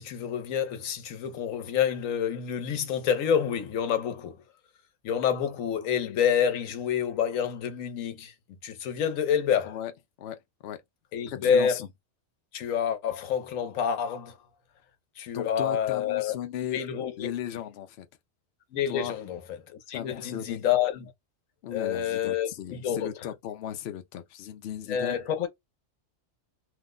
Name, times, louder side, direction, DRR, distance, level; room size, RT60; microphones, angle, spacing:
voice 1, 0.0-4.3 5.0-8.3 8.6-9.8 11.1-11.8 12.5-14.4 15.2-16.3 16.7-17.3 18.7-21.1 21.7-23.1 24.9-25.5, left 8 dB, 85° left, 1.1 m, -28 dB
voice 2, 10.2-10.8 11.3-11.9 15.3-16.8 17.2-18.1 18.9-19.1 19.9-20.6 21.6-25.2, left 10 dB, 65° left, 0.7 m, -36 dB
2.7 x 2.1 x 3.6 m
omnidirectional pair, 1.4 m